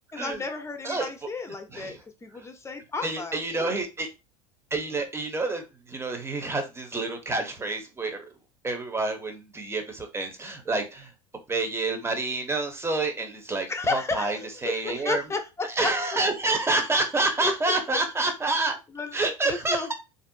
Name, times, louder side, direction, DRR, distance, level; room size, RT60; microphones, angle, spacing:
voice 1, 0.1-3.8 13.7-15.9 17.4-17.5 17.9-18.0 18.9-19.9, left 4 dB, 15° left, 6 dB, 0.9 m, -33 dB
voice 2, 3.0-4.1 4.7-8.3 8.6-11.1 11.5-15.2 15.8-18.8 19.1-19.9, right 2 dB, 15° right, 5 dB, 1.1 m, -28 dB
4.0 x 2.7 x 2.8 m, 0.27 s
figure-of-eight pair, 70°, 18 cm